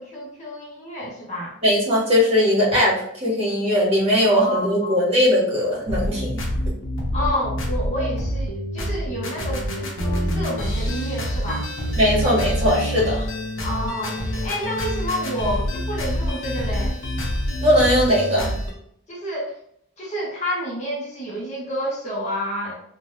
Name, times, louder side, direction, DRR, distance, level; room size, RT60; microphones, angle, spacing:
voice 1, 0.0-1.5 4.3-5.0 7.1-11.7 13.6-17.0 19.1-19.6 20.0-22.7, equal, 35° left, -4 dB, 0.7 m, -29 dB
voice 2, 1.6-6.3 12.0-13.2 17.6-18.5, equal, 30° right, -6 dB, 1.4 m, -19 dB
sound 1, 5.9-18.7, equal, 75° left, 0.8 m, -26 dB
3.2 x 2.2 x 2.6 m, 0.70 s
head